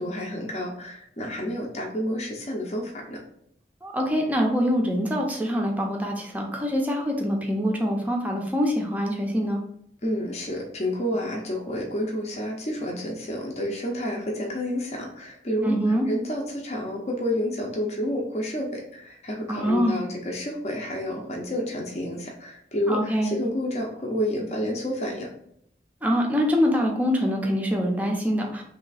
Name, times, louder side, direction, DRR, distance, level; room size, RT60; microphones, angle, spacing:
voice 1, 0.0-3.2 10.0-25.3, equal, 35° left, -1 dB, 0.6 m, -30 dB
voice 2, 3.8-9.6 15.6-16.1 19.5-20.0 22.9-23.4 26.0-28.6, equal, 10° right, 0 dB, 0.5 m, -24 dB
3.2 x 2.8 x 4.0 m, 0.70 s
head